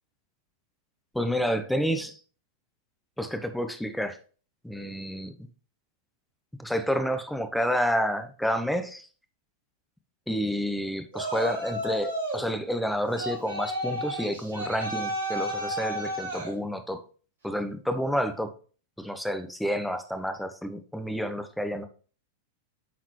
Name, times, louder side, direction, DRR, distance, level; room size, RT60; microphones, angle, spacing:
voice 1, 1.1-2.2 3.2-4.2 4.6-5.3 6.6-9.1 10.3-17.0 17.4-18.5 19.0-21.9, equal, ahead, 8 dB, 0.8 m, -29 dB
Yell, 11.1-12.5 13.2-16.5, equal, 75° right, 3.1 m, -32 dB
8.4 x 4.0 x 3.1 m, 0.40 s
figure-of-eight pair, 95°, 0 cm